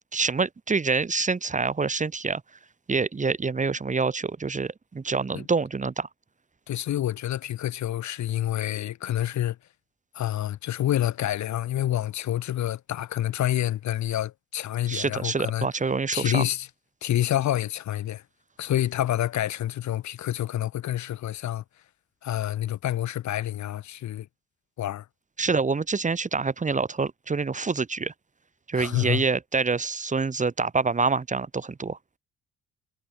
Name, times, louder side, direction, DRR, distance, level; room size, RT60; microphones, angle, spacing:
voice 1, 0.1-2.4 2.9-6.1 14.9-16.4 25.4-28.1 28.7-32.0, right 4 dB, 25° right, 1.3 m, -26 dB
voice 2, 6.7-9.6 10.1-15.7 16.1-16.7 17.0-18.2 18.6-21.6 22.2-24.3 24.8-25.1 28.7-29.2, left 12 dB, 70° left, 1.4 m, -28 dB
cardioid pair, 90°, 30 cm